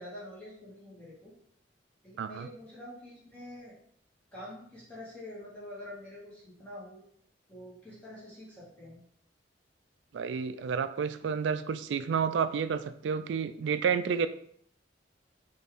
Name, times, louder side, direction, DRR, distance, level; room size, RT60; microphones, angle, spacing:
voice 1, 0.0-1.3 2.0-3.8 4.3-7.0 7.5-9.0, left 1 dB, 10° left, -8 dB, 1.5 m, -46 dB
voice 2, 2.2-2.5 10.1-14.3, right 6 dB, 75° right, 12 dB, 0.3 m, -30 dB
4.2 x 3.4 x 3.5 m, 0.66 s
head